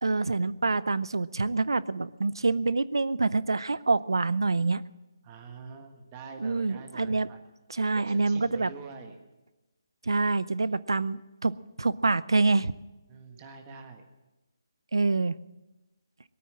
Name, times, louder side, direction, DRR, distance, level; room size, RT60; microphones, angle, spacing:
voice 1, 0.0-4.8 6.4-7.3 7.7-8.7 10.0-12.7 14.9-15.4, right 3 dB, 90° right, 18 dB, 0.6 m, -26 dB
voice 2, 5.2-7.4 7.9-9.2 13.1-14.1, right 5 dB, 20° right, 5 dB, 1.5 m, -45 dB
18.0 x 9.4 x 7.5 m, 1.1 s
hypercardioid pair, 160°, 2 cm